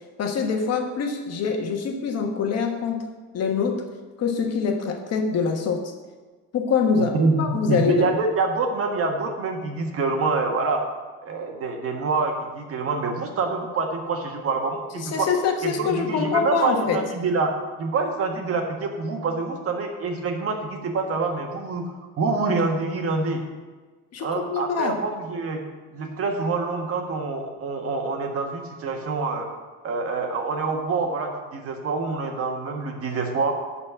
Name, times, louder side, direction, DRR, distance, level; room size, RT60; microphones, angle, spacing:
voice 1, 0.2-3.1 3.3-3.8 4.2-5.9 6.5-8.1 15.0-17.0 24.1-25.0, left 5 dB, 55° left, 4 dB, 1.4 m, -24 dB
voice 2, 7.1-10.8 11.2-15.3 15.6-17.5 17.8-23.4 24.2-25.6 25.9-29.5 29.8-33.5, right 4 dB, 50° right, 3 dB, 1.5 m, -26 dB
10.5 x 4.3 x 7.3 m, 1.4 s
cardioid pair, 130°, 30 cm